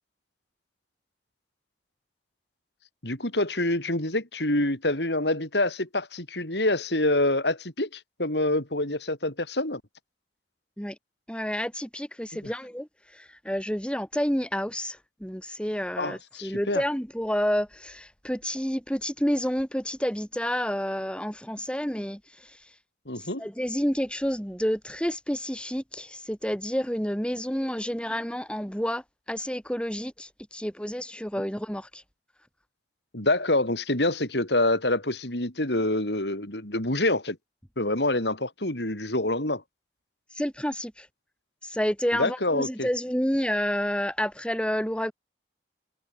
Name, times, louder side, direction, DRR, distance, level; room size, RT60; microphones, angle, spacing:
voice 1, 3.0-9.8 16.0-16.8 23.1-23.4 33.1-37.4 37.8-39.6 42.1-42.9, left 2 dB, 75° left, 6.1 m, -26 dB
voice 2, 11.3-22.6 23.2-32.0 40.3-41.1 41.6-45.1, equal, 5° left, 6.1 m, -29 dB
head